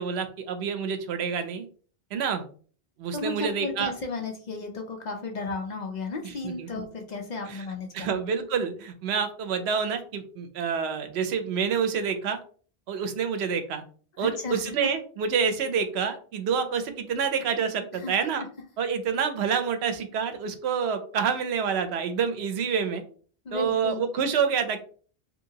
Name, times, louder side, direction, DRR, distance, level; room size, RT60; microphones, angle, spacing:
voice 1, 0.0-1.7 2.1-2.4 3.0-3.9 6.2-6.8 7.5-7.6 7.9-12.4 12.9-13.8 14.2-18.4 18.8-23.0 23.5-24.8, right 6 dB, 90° right, 8 dB, 0.8 m, -28 dB
voice 2, 3.1-8.2 14.2-14.7 18.0-18.1 23.5-24.0, left 3 dB, 55° left, 3 dB, 0.6 m, -34 dB
2.8 x 2.8 x 2.7 m, 0.43 s
omnidirectional pair, 1.1 m